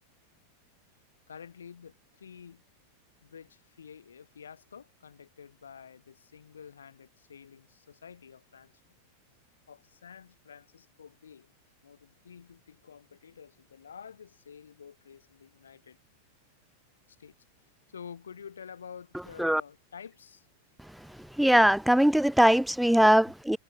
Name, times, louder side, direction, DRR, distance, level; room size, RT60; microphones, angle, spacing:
voice 1, 1.3-2.6 3.2-8.8 9.7-11.5 11.8-16.0 17.1-17.3 17.9-20.5, left 7 dB, 70° left, 7.2 m, -49 dB
voice 2, 21.4-23.6, equal, ahead, 0.3 m, -21 dB
figure-of-eight pair, 90°, 0 cm